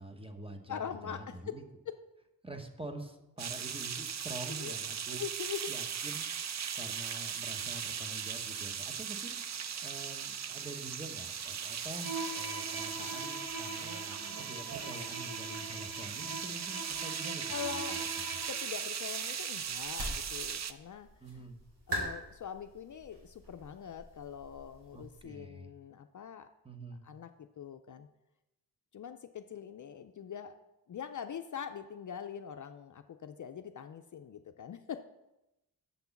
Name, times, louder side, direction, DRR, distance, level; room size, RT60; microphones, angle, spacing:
voice 1, 0.0-1.6 2.4-5.2 5.7-9.4 9.8-14.2 14.5-17.8 21.2-21.6 24.9-25.7 26.6-27.1, right 2 dB, 15° right, 5 dB, 0.9 m, -46 dB
voice 2, 0.7-1.6 1.9-2.0 4.5-4.7 5.2-5.7 17.5-18.0 18.5-21.1 21.3-21.5 21.9-26.5 27.0-28.1 28.9-30.6 30.9-35.0, left 8 dB, 50° left, 7 dB, 0.5 m, -43 dB
sound 1, 3.4-20.7, right 8 dB, 45° right, 0.5 m, -38 dB
Bowed string instrument, 12.0-18.7, right 1 dB, 15° left, 1.7 m, -43 dB
sound 2, 19.6-25.2, equal, 75° right, 3.7 m, -43 dB
6.9 x 6.0 x 7.0 m, 0.95 s
wide cardioid pair, 120°, 40 cm